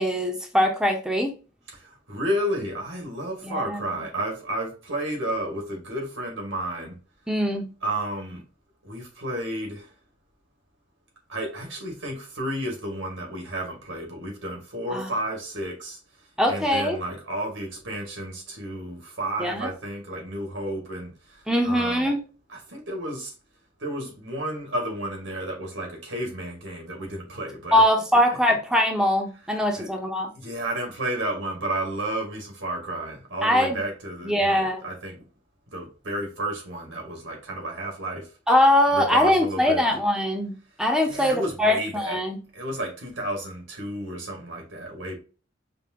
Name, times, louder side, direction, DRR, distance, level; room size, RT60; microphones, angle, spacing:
voice 1, 0.0-1.3 3.4-4.0 7.3-7.7 14.9-15.1 16.4-17.0 19.4-19.7 21.5-22.2 27.7-30.3 33.4-33.8 34.2-34.8 38.5-42.4, left 1 dB, 5° right, 0.8 m, -22 dB
voice 2, 2.1-7.0 7.8-8.4 8.8-9.9 11.3-16.0 16.5-21.1 21.6-22.1 22.7-23.3 23.8-27.8 29.8-29.9 30.4-35.2 35.7-38.3 38.9-39.8 41.1-42.2 42.5-45.2, right 1 dB, 85° right, 2.1 m, -32 dB
5.1 x 2.9 x 2.9 m
head